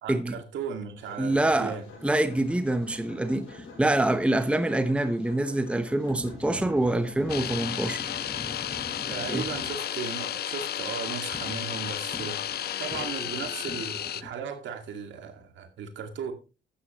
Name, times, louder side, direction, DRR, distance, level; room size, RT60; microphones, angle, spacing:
voice 1, 0.0-1.9 9.1-12.4 12.8-16.3, right 7 dB, 75° right, 2.2 m, -36 dB
sound 1, 1.0-10.3, left 3 dB, 90° left, 6.6 m, -49 dB
voice 2, 1.2-1.8 2.0-8.2 9.3-9.4, right 1 dB, 5° right, 1.0 m, -26 dB
sound 2, 1.9-4.8 6.1-9.8 11.3-14.3, left 2 dB, 20° left, 5.5 m, -43 dB
sound 3, 7.3-14.2, left 11 dB, 55° left, 0.6 m, -33 dB
12.5 x 9.4 x 3.1 m
cardioid pair, 85°, 20 cm